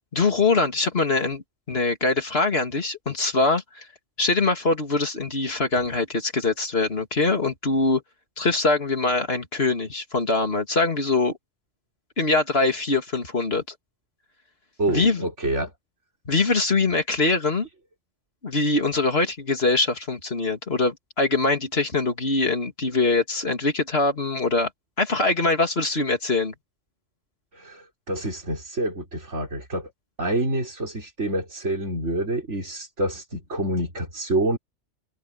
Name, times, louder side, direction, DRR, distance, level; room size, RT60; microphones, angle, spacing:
voice 1, 0.1-3.9 4.2-8.0 8.4-11.4 12.2-13.6 14.9-15.3 16.3-17.7 18.4-24.7 25.0-26.5, left 3 dB, 60° left, 3.0 m, -23 dB
voice 2, 14.8-15.7 27.5-29.9 30.2-34.6, right 1 dB, 85° right, 5.7 m, -27 dB
open air
omnidirectional pair, 1.2 m